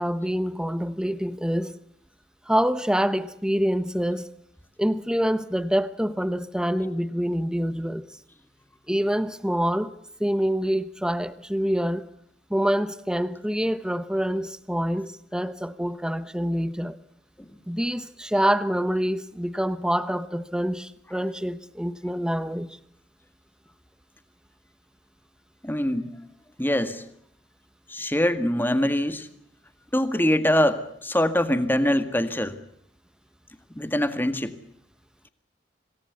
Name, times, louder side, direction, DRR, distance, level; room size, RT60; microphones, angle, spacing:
voice 1, 0.0-1.7 2.5-4.3 4.8-8.1 8.9-9.9 10.2-12.1 12.5-17.0 17.7-22.7, equal, 5° right, 0.9 m, -26 dB
voice 2, 25.6-26.1 26.6-27.0 27.9-29.3 29.9-32.6 33.8-34.5, left 1 dB, 10° left, 1.8 m, -23 dB
26.5 x 18.5 x 8.2 m
head